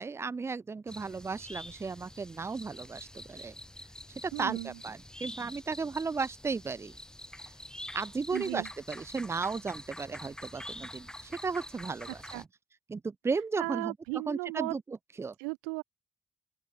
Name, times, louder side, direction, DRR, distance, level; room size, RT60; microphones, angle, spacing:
voice 1, 0.0-3.5 4.2-6.9 7.9-12.5 12.9-13.9 14.3-15.3, right 4 dB, 25° right, 0.6 m, -35 dB
sound 1, 0.9-12.5, left 1 dB, 5° left, 4.0 m, -46 dB
voice 2, 4.3-4.7 8.3-8.7 12.3-12.4 13.6-14.7 15.4-15.8, right 40 dB or more, 80° right, 0.8 m, -35 dB
open air
hypercardioid pair, 45°, 10 cm